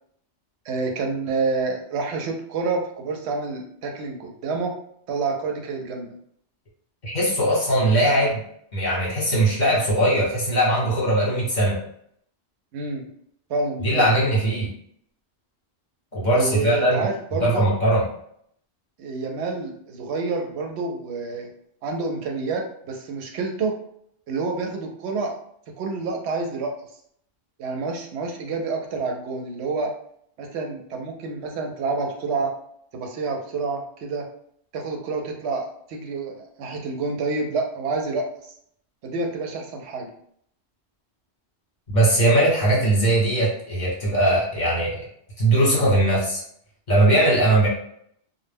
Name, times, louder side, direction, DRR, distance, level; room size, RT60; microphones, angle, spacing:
voice 1, 0.7-4.7 5.1-6.1 12.7-13.0 13.5-14.1 16.3-17.7 19.0-21.5 21.8-23.8 24.3-25.4 25.7-26.7 27.6-29.9 30.4-32.5 32.9-34.3 34.7-38.3 39.0-40.1, right 3 dB, 80° right, 2 dB, 0.8 m, -28 dB
voice 2, 7.0-8.4 8.7-11.8 13.8-14.7 16.1-18.0 41.9-45.0 45.4-46.4 46.9-47.7, right 1 dB, 45° left, -6 dB, 1.0 m, -20 dB
2.2 x 2.0 x 3.3 m, 0.68 s
omnidirectional pair, 1.1 m